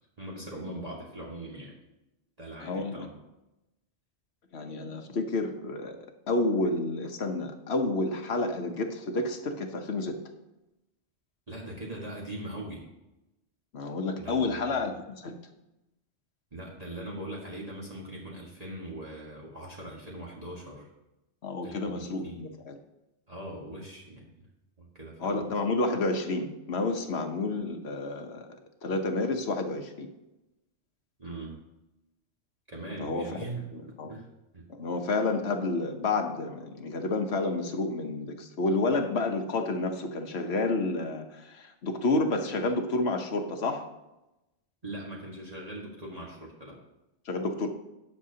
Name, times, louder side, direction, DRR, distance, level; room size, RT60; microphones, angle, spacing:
voice 1, 0.2-1.8 2.4-3.1 11.5-12.8 14.2-14.8 16.5-20.9 21.6-22.4 23.3-24.3 24.8-25.5 31.2-31.6 32.7-34.3 34.5-34.6 44.8-46.8, right 1 dB, 35° right, -4 dB, 1.7 m, -41 dB
voice 2, 2.6-3.1 4.5-6.0 6.3-10.2 13.7-15.4 21.4-22.8 25.2-28.5 28.8-30.1 33.0-33.4 33.7-34.1 34.7-43.8 47.3-47.7, left 2 dB, 65° left, 5 dB, 1.2 m, -30 dB
18.5 x 6.6 x 2.8 m, 0.96 s
omnidirectional pair, 1.2 m